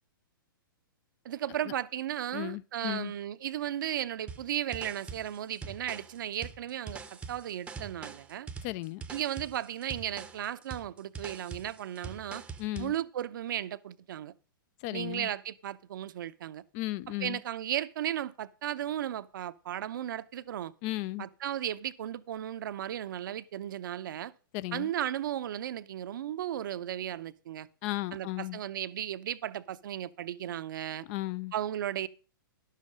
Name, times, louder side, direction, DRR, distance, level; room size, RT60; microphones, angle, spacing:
voice 1, 1.2-8.5 9.1-12.4 12.8-14.3 14.9-16.6 17.2-20.7 21.2-24.3 24.7-27.7 28.1-31.0 31.5-32.1, right 11 dB, 65° right, 0.7 m, -35 dB
voice 2, 2.3-3.1 8.6-9.0 12.6-12.9 14.8-15.3 16.7-17.4 20.8-21.3 24.5-24.9 27.8-28.6 31.1-31.5, left 18 dB, 40° left, 0.5 m, -35 dB
sound 1, 4.3-13.0, right 5 dB, 10° right, 0.8 m, -44 dB
11.0 x 7.4 x 5.2 m
hypercardioid pair, 130°, 12 cm